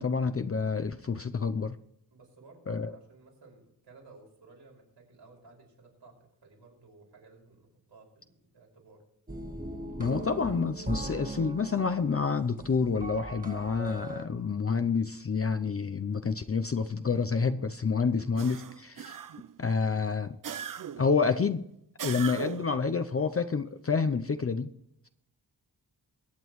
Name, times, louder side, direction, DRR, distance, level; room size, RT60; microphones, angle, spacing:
voice 1, 0.0-1.8 2.7-2.9 10.0-19.2 19.6-20.4 21.0-21.6 22.0-24.7, left 5 dB, 35° left, 9 dB, 0.5 m, -28 dB
voice 2, 2.1-9.0 18.0-18.3 18.9-19.2, right 3 dB, 90° right, 0 dB, 5.4 m, -56 dB
sound 1, 9.3-14.3, right 2 dB, 20° right, 1.6 m, -39 dB
sound 2, 18.4-19.6 20.4-21.2 22.0-22.8, right 8 dB, 55° right, 0.5 m, -39 dB
22.5 x 9.2 x 3.1 m, 0.76 s
wide cardioid pair, 120°, 41 cm